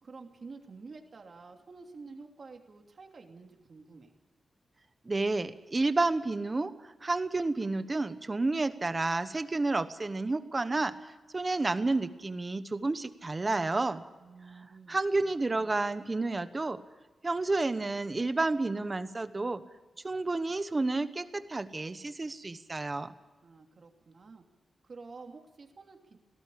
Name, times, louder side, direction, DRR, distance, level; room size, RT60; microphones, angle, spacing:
voice 1, 0.0-4.1 14.2-16.1 23.4-24.4 24.8-26.2, right 4 dB, 40° right, 3 dB, 2.9 m, -50 dB
voice 2, 5.0-14.0 14.9-16.8 17.2-19.6 20.0-23.1, right 3 dB, 20° right, 11 dB, 1.1 m, -30 dB
18.0 x 17.5 x 8.6 m, 1.2 s
wide cardioid pair, 165°, 0 cm